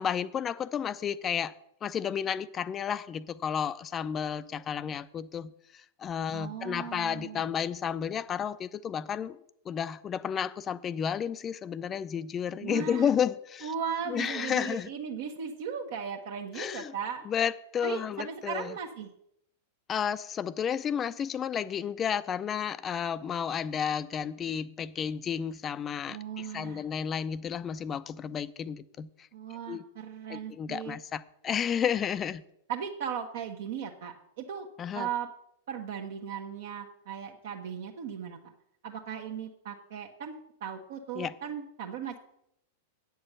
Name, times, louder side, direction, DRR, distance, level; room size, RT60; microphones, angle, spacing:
voice 1, 0.0-1.5 1.8-13.7 14.1-14.9 16.5-16.9 17.3-18.7 19.9-29.1 29.7-29.8 30.3-32.4 34.8-35.1 41.1-41.3, left 8 dB, 25° left, 16 dB, 0.5 m, -32 dB
voice 2, 6.3-7.4 12.6-13.1 13.6-17.2 17.8-19.1 26.1-26.8 29.3-31.0 32.7-34.7 34.9-35.3 35.7-38.4 38.8-42.2, right 7 dB, 60° right, 2 dB, 1.0 m, -37 dB
8.8 x 7.0 x 6.6 m, 0.75 s
figure-of-eight pair, 95°, 0 cm